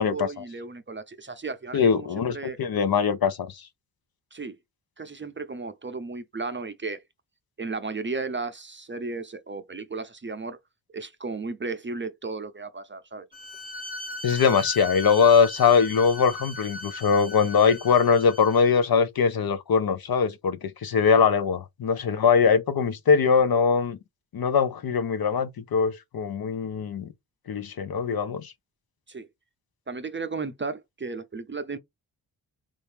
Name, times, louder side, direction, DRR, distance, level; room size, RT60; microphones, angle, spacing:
voice 1, 0.0-2.6 4.3-4.5 5.0-7.0 7.6-10.6 10.9-13.3 21.1-21.3 29.1-29.3 29.9-31.8, right 4 dB, 25° right, 0.7 m, -34 dB
voice 2, 1.7-3.6 14.2-24.0 24.3-27.1 27.5-28.5, left 6 dB, 50° left, 0.7 m, -22 dB
Bowed string instrument, 13.3-18.8, left 1 dB, 15° left, 0.8 m, -38 dB
3.1 x 2.7 x 3.4 m
supercardioid pair, 45°, 49 cm